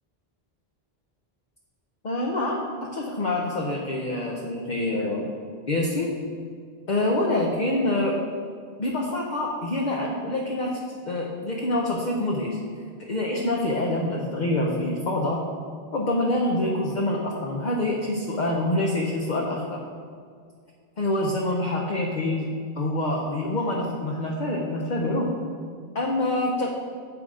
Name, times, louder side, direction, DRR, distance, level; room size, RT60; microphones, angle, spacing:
voice 1, 2.0-2.6 2.9-5.3 5.7-6.1 6.9-8.1 8.8-10.8 11.0-12.6 13.0-15.4 15.9-19.8 21.0-25.3 25.9-26.7, left 1 dB, 50° left, -2 dB, 0.9 m, -26 dB
7.5 x 6.1 x 4.9 m, 2.1 s
omnidirectional pair, 1.1 m